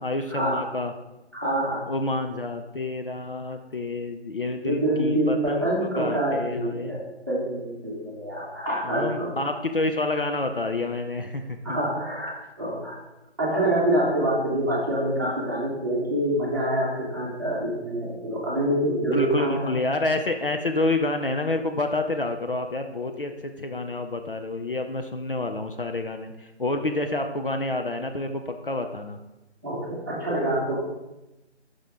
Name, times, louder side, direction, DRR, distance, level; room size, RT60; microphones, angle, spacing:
voice 1, 0.0-0.9 1.9-7.0 8.8-11.8 19.0-29.2, left 2 dB, 50° left, 6 dB, 0.5 m, -28 dB
voice 2, 1.3-1.8 4.6-9.3 11.6-12.9 13.4-19.7 29.6-30.8, right 1 dB, 15° right, -7 dB, 1.0 m, -26 dB
7.2 x 5.3 x 3.5 m, 0.97 s
figure-of-eight pair, 165°, 34 cm